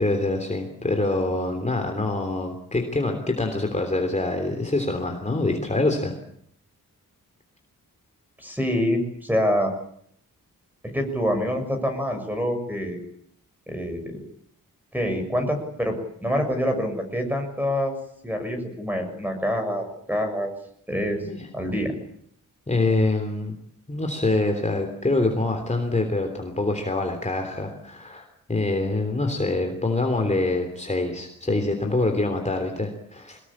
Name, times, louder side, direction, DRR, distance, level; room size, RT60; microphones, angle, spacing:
voice 1, 0.0-6.1 21.2-21.5 22.7-23.5 23.9-33.4, left 2 dB, 20° left, 4 dB, 3.3 m, -25 dB
voice 2, 8.4-9.7 10.9-13.0 13.7-14.2 14.9-17.9 18.2-20.5 20.9-21.2 21.5-21.9, equal, 5° right, 5 dB, 6.8 m, -26 dB
23.5 x 20.5 x 8.7 m, 0.67 s
wide cardioid pair, 120°, 33 cm